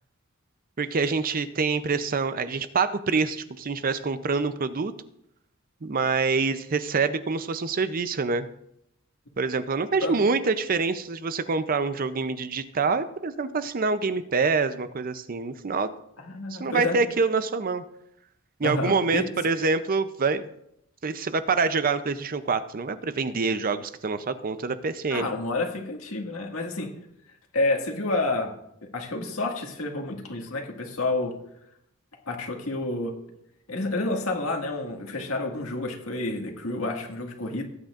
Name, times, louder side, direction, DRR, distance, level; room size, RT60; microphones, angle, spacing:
voice 1, 0.8-4.9 5.8-8.5 9.4-15.9 16.5-17.8 18.6-20.4 21.0-25.3, right 4 dB, 40° right, 12 dB, 0.6 m, -26 dB
voice 2, 16.2-17.0 18.6-19.2 25.1-26.9 27.5-28.5 28.9-31.3 32.3-33.1 33.7-37.6, left 2 dB, 75° left, 1 dB, 1.9 m, -29 dB
18.0 x 9.0 x 2.5 m, 0.77 s
head